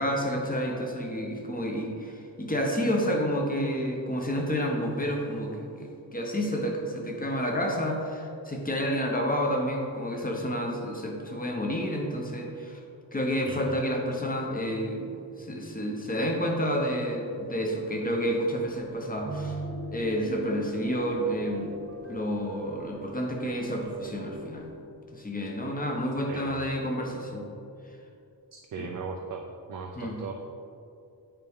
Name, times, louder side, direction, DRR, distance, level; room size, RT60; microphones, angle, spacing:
voice 1, 0.0-12.8 13.1-15.1 15.4-19.6 19.9-21.8 22.1-24.7 25.1-27.4 28.8-28.9 30.0-30.2, equal, 20° left, 1 dB, 0.8 m, -30 dB
voice 2, 13.4-13.8 26.3-26.7 28.5-30.3, right 5 dB, 45° right, 2 dB, 0.4 m, -38 dB
sound 1, 18.6-24.7, equal, 30° right, 1.0 m, -41 dB
8.9 x 4.6 x 3.6 m, 2.6 s
wide cardioid pair, 160°, 44 cm